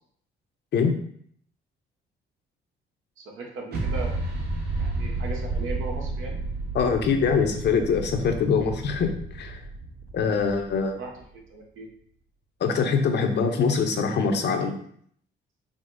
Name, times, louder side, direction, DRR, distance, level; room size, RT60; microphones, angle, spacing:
voice 1, 3.2-4.2 4.8-6.4 11.0-11.2 11.5-11.9, right 2 dB, 80° right, 0 dB, 1.0 m, -37 dB
sound 1, 3.7-11.2, right 3 dB, 55° right, 1.1 m, -32 dB
voice 2, 6.7-9.6 10.1-11.0 12.6-14.7, left 5 dB, 60° left, 5 dB, 0.7 m, -23 dB
4.9 x 2.0 x 3.8 m, 0.63 s
cardioid pair, 90°, 20 cm